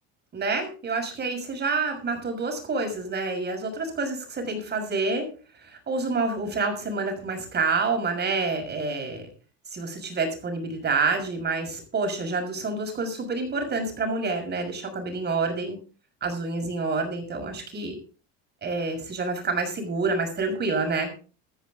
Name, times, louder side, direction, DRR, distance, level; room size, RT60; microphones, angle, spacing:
voice 1, 0.3-5.3 5.6-9.3 9.7-15.8 16.2-18.0 18.6-21.1, right 3 dB, 35° right, 5 dB, 6.3 m, -28 dB
14.5 x 14.0 x 3.9 m, 0.37 s
cardioid pair, 115°, 29 cm